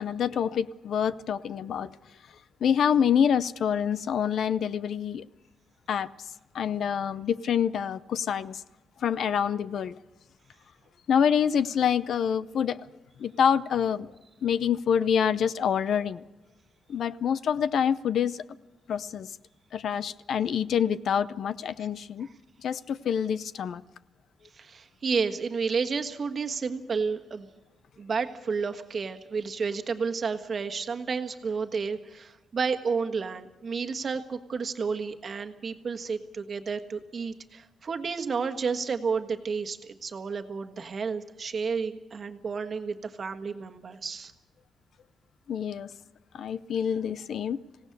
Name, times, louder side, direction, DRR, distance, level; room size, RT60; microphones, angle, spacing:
voice 1, 0.0-2.0 2.6-5.2 5.9-6.1 6.5-8.6 9.0-10.0 11.1-12.8 13.2-14.1 14.4-16.2 16.9-18.4 18.9-19.3 19.7-22.3 22.6-23.8 45.5-45.9 46.3-47.6, left 8 dB, 65° left, 0.6 m, -26 dB
voice 2, 24.6-27.5 28.0-44.3, right 5 dB, 40° right, 1.4 m, -31 dB
26.0 x 17.5 x 6.7 m
cardioid pair, 145°, 0 cm